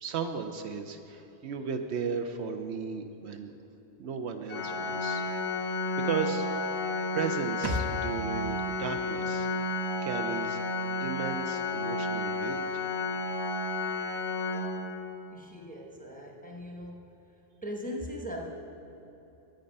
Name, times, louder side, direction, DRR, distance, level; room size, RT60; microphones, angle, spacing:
voice 1, 0.0-3.5 4.0-5.2 5.6-6.5 7.1-10.6 11.0-12.8, right 6 dB, 70° right, 7 dB, 0.8 m, -35 dB
Organ, 4.5-15.3, left 2 dB, 70° left, 1.0 m, -32 dB
sound 1, 7.6-11.2 11.4-11.5, equal, 40° right, 0.3 m, -39 dB
voice 2, 15.3-17.1 17.6-18.5, equal, 10° left, 0 dB, 0.8 m, -39 dB
9.2 x 8.8 x 5.3 m, 3.0 s
omnidirectional pair, 1.2 m